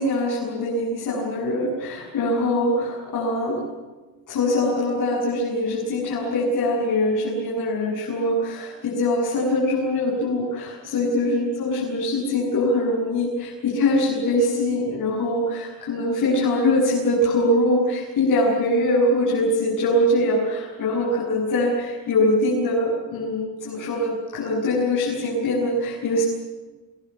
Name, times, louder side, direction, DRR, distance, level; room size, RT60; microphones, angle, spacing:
voice 1, 0.0-3.6 4.3-26.2, left 1 dB, 45° left, -4 dB, 8.0 m, -23 dB
27.5 x 23.0 x 7.5 m, 1.2 s
cardioid pair, 175°, 45 cm